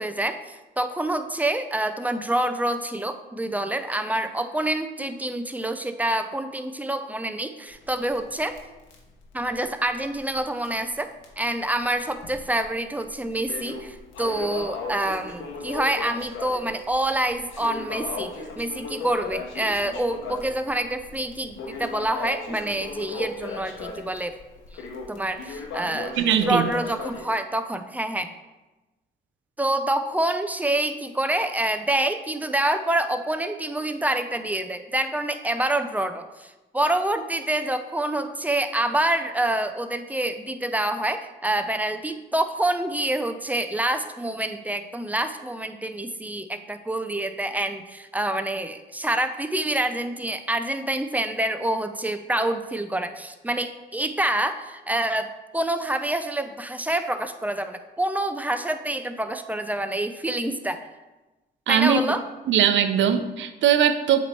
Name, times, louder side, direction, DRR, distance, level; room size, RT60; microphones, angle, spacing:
voice 1, 0.0-8.6 9.3-24.4 24.7-26.1 26.4-28.3 29.6-60.8 61.7-62.2, right 1 dB, 10° right, 8 dB, 0.4 m, -27 dB
Crackle, 7.7-10.4 10.7-10.8 11.2-11.3 12.0-12.6 13.0-27.3, left 4 dB, 90° left, 1.1 m, -36 dB
voice 2, 26.2-26.7 61.7-62.0 62.5-64.2, right 9 dB, 70° right, 9 dB, 0.6 m, -20 dB
7.9 x 3.0 x 4.4 m, 1.1 s
cardioid pair, 90°, 20 cm